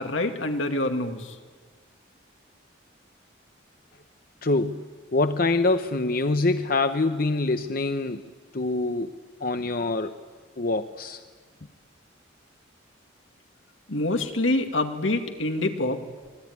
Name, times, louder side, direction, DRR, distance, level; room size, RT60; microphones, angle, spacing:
voice 1, 0.0-1.4 13.9-16.0, left 2 dB, 85° left, 5 dB, 2.3 m, -26 dB
voice 2, 4.4-8.2 8.5-9.1 9.4-10.2 10.6-11.2, left 2 dB, 50° left, 8 dB, 0.8 m, -25 dB
25.5 x 21.0 x 9.5 m, 1.5 s
head